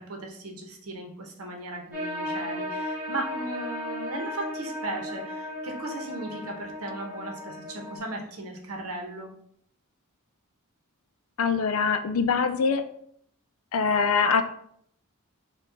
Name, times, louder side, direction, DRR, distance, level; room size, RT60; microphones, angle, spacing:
voice 1, 0.0-9.3, right 2 dB, 75° right, 2 dB, 0.9 m, -37 dB
sound 1, 1.9-8.0, left 1 dB, 5° right, 1.6 m, -35 dB
voice 2, 11.4-12.8 13.7-14.4, left 5 dB, 65° left, 10 dB, 0.4 m, -23 dB
4.5 x 2.3 x 3.9 m, 0.67 s
head